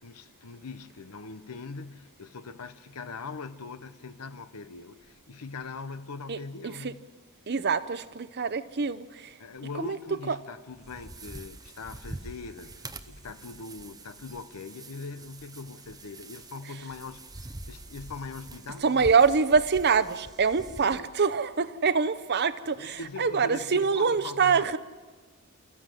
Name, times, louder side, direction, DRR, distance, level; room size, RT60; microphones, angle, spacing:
voice 1, 0.0-7.1 9.4-19.1 20.8-21.1 22.7-24.8, left 4 dB, 80° left, 0.8 m, -41 dB
voice 2, 7.5-9.4 9.8-10.0 10.3-10.4 18.8-24.8, right 5 dB, 50° right, 0.8 m, -25 dB
sound 1, 10.7-21.0, right 2 dB, 15° right, 0.7 m, -45 dB
29.5 x 14.5 x 7.6 m
head